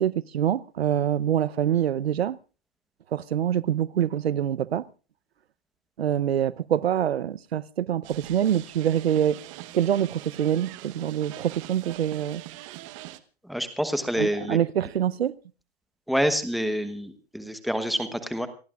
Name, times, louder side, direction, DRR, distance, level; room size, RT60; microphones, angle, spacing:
voice 1, 0.0-2.4 3.1-4.8 6.0-9.4 9.7-12.4 14.2-15.3, right 10 dB, 80° right, 0.8 m, -25 dB
sound 1, 8.0-13.2, right 17 dB, 30° right, 1.0 m, -43 dB
voice 2, 13.4-14.6 16.1-18.5, equal, ahead, 1.1 m, -27 dB
28.5 x 15.0 x 2.5 m
hypercardioid pair, 140°, 31 cm